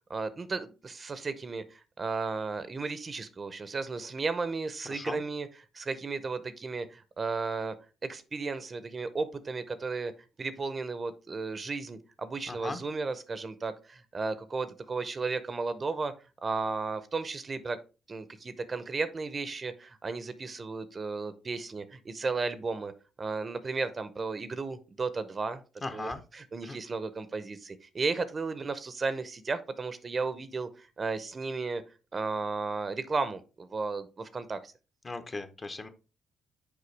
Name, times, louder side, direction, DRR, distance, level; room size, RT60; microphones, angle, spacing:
voice 1, 0.1-5.5 5.7-7.7 8.0-10.1 10.4-16.1 16.4-17.8 18.1-22.9 23.2-25.6 25.9-31.8 32.1-34.7, right 4 dB, 35° right, 13 dB, 0.7 m, -34 dB
voice 2, 4.9-5.2 12.5-12.8 25.8-26.2 26.6-26.8 35.0-35.9, left 3 dB, 30° left, 9 dB, 0.8 m, -37 dB
6.8 x 4.5 x 3.3 m, 0.32 s
cardioid pair, 90°, 0 cm